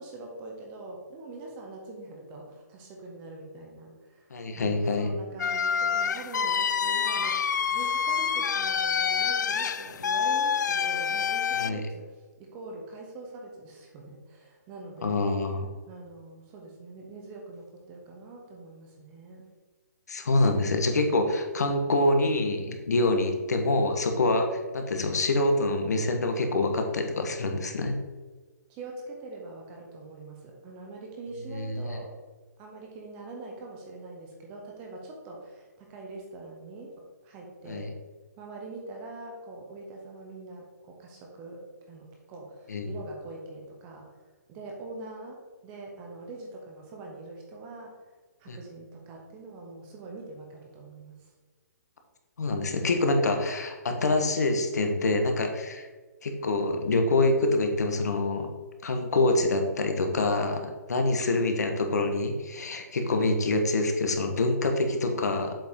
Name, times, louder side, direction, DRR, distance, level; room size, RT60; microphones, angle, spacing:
voice 1, 0.0-4.3 4.5-7.5 7.7-12.1 12.4-15.3 15.9-19.4 23.0-23.3 28.7-32.1 32.6-36.9 37.2-38.0 38.4-44.1 44.5-47.9 48.4-51.3, right 2 dB, 15° right, 0 dB, 0.6 m, -43 dB
voice 2, 4.3-5.1 11.5-11.8 15.0-15.7 20.1-28.0 31.5-32.0 37.6-37.9 42.7-42.9 48.5-48.6 52.4-55.9 56.2-58.5 58.8-65.5, left 2 dB, 70° left, 4 dB, 1.2 m, -26 dB
sound 1, 5.4-11.7, left 7 dB, 90° left, 0.4 m, -27 dB
7.6 x 4.9 x 3.6 m, 1.3 s
hypercardioid pair, 180°, 9 cm